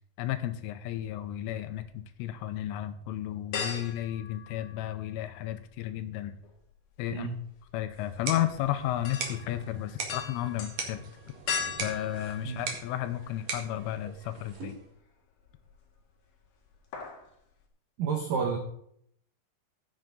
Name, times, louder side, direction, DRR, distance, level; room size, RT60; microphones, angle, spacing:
voice 1, 0.2-6.3 7.0-7.3 7.7-11.1 11.8-14.8, left 12 dB, 85° left, 11 dB, 3.2 m, -33 dB
sound 1, 1.0-1.9 2.3-2.4 3.5-5.3 5.5-13.4 13.9-14.0 15.4-16.0 16.3-16.5 16.7-17.3 17.6-17.7, left 6 dB, 60° left, 2.1 m, -39 dB
sound 2, 7.9-14.9, right 4 dB, 55° right, 1.9 m, -41 dB
voice 2, 18.0-18.6, right 6 dB, 75° right, 2 dB, 2.0 m, -30 dB
15.0 x 7.9 x 3.9 m, 0.68 s
omnidirectional pair, 5.8 m